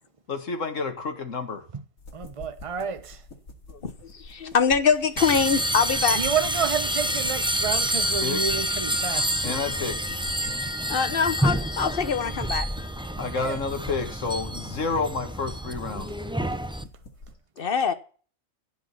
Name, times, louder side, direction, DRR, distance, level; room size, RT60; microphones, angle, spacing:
voice 1, 0.3-1.7 8.2-8.5 9.4-10.0 13.2-16.1, left 4 dB, 65° left, 2.1 m, -30 dB
sound 1, 2.0-17.3, left 2 dB, 85° left, 2.8 m, -46 dB
voice 2, 2.1-3.2 6.2-9.5 13.2-13.6, right 6 dB, 25° right, 0.9 m, -30 dB
voice 3, 3.8-6.2 9.4-9.5 10.9-12.7 17.6-17.9, left 6 dB, 45° left, 1.2 m, -24 dB
sound 2, 5.2-16.8, right 1 dB, 5° right, 0.4 m, -28 dB
16.0 x 5.3 x 8.5 m
omnidirectional pair, 1.4 m